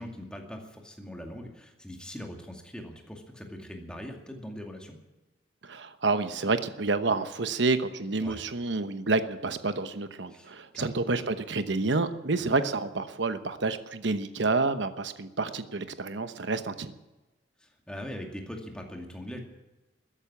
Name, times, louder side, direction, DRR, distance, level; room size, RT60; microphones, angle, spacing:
voice 1, 0.0-5.0 8.2-8.4 10.3-10.9 12.3-12.5 17.6-19.4, equal, 5° left, 2 dB, 2.3 m, -41 dB
voice 2, 5.6-16.9, right 3 dB, 65° right, 11 dB, 1.0 m, -29 dB
14.0 x 11.0 x 8.6 m, 1.1 s
head